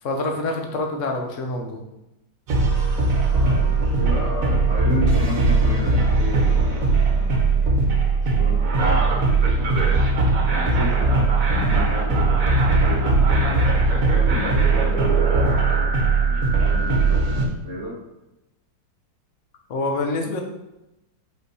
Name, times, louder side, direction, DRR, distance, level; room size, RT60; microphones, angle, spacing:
voice 1, 0.0-1.8 19.7-20.4, left 2 dB, 50° left, 2 dB, 1.1 m, -26 dB
sound 1, 2.5-17.5, right 3 dB, 55° right, 1.3 m, -19 dB
voice 2, 3.3-7.7 8.1-9.0 10.4-17.9, equal, 20° left, -10 dB, 2.5 m, -33 dB
5.4 x 4.4 x 4.7 m, 0.94 s
omnidirectional pair, 1.9 m